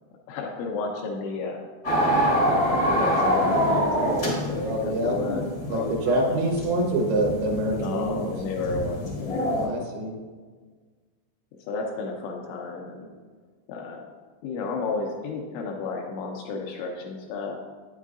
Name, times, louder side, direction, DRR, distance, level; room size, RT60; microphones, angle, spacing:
voice 1, 0.3-1.7 2.7-6.4 7.7-9.8 11.6-13.1 13.7-14.1 14.4-17.6, left 3 dB, 85° left, 0 dB, 2.7 m, -32 dB
sound 1, 1.8-9.7, equal, 65° left, 0.9 m, -26 dB
voice 2, 4.6-5.1 5.7-8.3 9.5-10.1, right 1 dB, 75° right, 1 dB, 3.1 m, -26 dB
9.1 x 8.1 x 2.4 m, 1.5 s
omnidirectional pair, 5.6 m